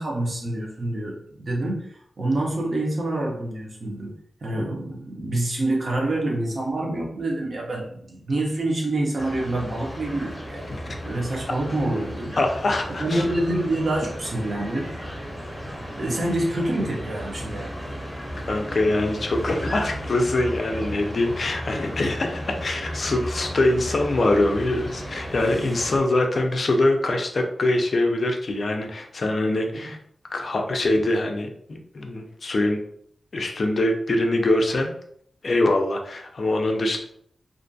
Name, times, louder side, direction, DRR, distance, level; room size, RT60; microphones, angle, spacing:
voice 1, 0.0-1.9 2.2-4.1 4.4-10.7 11.0-12.3 13.0-14.9 16.0-17.7 29.7-29.9, right 1 dB, 50° right, -2 dB, 0.7 m, -27 dB
sound 1, 9.2-26.0, equal, 5° left, 0.7 m, -34 dB
voice 2, 12.4-13.2 18.5-30.0 30.3-32.8 33.3-34.9 35.4-37.0, left 2 dB, 50° left, 3 dB, 0.3 m, -23 dB
2.5 x 2.2 x 2.6 m, 0.68 s
wide cardioid pair, 145°, 0 cm